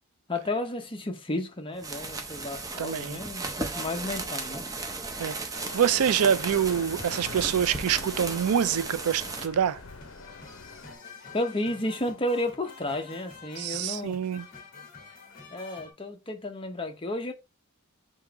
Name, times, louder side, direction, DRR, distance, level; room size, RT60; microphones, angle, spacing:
voice 1, 0.3-4.6 11.3-14.2 15.5-17.3, left 1 dB, 25° left, 0.7 m, -32 dB
sound 1, 1.8-9.5, right 3 dB, 15° right, 0.5 m, -36 dB
voice 2, 2.8-3.2 5.2-5.5 5.7-9.8 13.6-14.4, right 8 dB, 85° right, 0.4 m, -26 dB
sound 2, 5.5-11.0, left 3 dB, 60° left, 0.7 m, -43 dB
sound 3, 9.9-15.9, left 5 dB, 40° left, 1.1 m, -48 dB
3.7 x 2.9 x 4.6 m
head